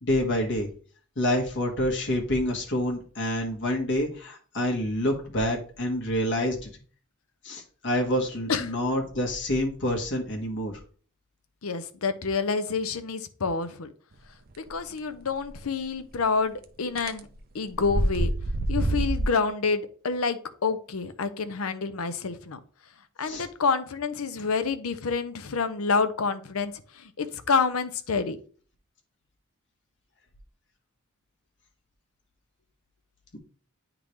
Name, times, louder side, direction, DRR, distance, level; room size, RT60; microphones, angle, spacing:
voice 1, 0.0-0.7 1.2-6.7 7.4-10.8 23.3-23.5, left 1 dB, 60° left, 1 dB, 1.3 m, -27 dB
voice 2, 11.6-13.9 14.6-17.3 17.5-18.3 18.7-22.6 23.2-28.4, left 4 dB, 80° left, 11 dB, 0.7 m, -28 dB
sound 1, 15.5-15.6 17.0-17.2 17.7-19.3, right 1 dB, 45° right, 0.6 m, -26 dB
9.6 x 3.7 x 3.1 m, 0.42 s
head